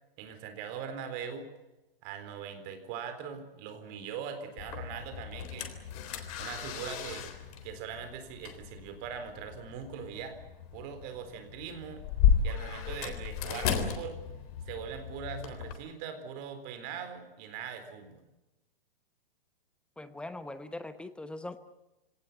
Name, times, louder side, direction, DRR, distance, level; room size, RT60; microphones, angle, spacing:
voice 1, 0.2-1.5 2.0-5.7 6.4-7.3 7.6-10.4 10.7-12.0 12.4-14.2 14.7-18.3, right 7 dB, 35° right, 8 dB, 4.1 m, -41 dB
sound 1, 4.6-15.7, left 8 dB, 40° left, 3.7 m, -34 dB
voice 2, 20.0-21.6, left 2 dB, 5° left, 11 dB, 0.8 m, -41 dB
25.5 x 18.0 x 9.5 m, 0.99 s
hypercardioid pair, 145°, 29 cm